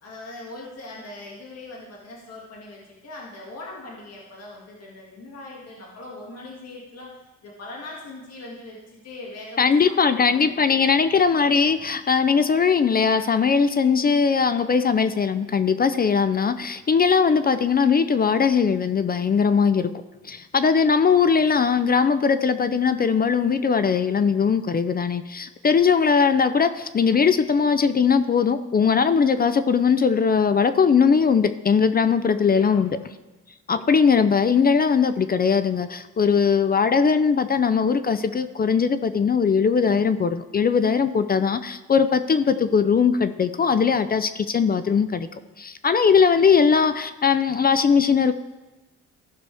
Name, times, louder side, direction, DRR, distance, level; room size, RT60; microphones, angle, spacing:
voice 1, 0.0-7.1 7.4-10.9 32.5-32.8, left 2 dB, 55° left, -3 dB, 2.1 m, -41 dB
voice 2, 9.6-19.9 20.2-33.0 33.7-45.3 45.6-48.3, left 6 dB, 30° left, 12 dB, 0.5 m, -20 dB
14.5 x 6.0 x 3.4 m, 1.1 s
cardioid pair, 90°, 30 cm